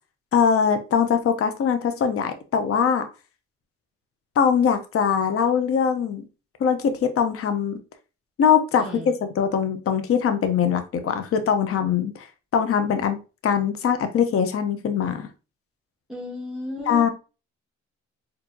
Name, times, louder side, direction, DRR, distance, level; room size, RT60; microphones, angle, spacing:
voice 1, 0.3-3.0 4.4-6.2 6.6-7.8 8.4-12.3 12.5-13.2 13.4-15.3 16.9-17.1, left 7 dB, 50° left, 8 dB, 0.7 m, -22 dB
voice 2, 8.8-9.1 16.1-17.1, left 1 dB, ahead, -3 dB, 1.1 m, -34 dB
4.4 x 2.7 x 2.6 m, 0.31 s
cardioid pair, 90°, 30 cm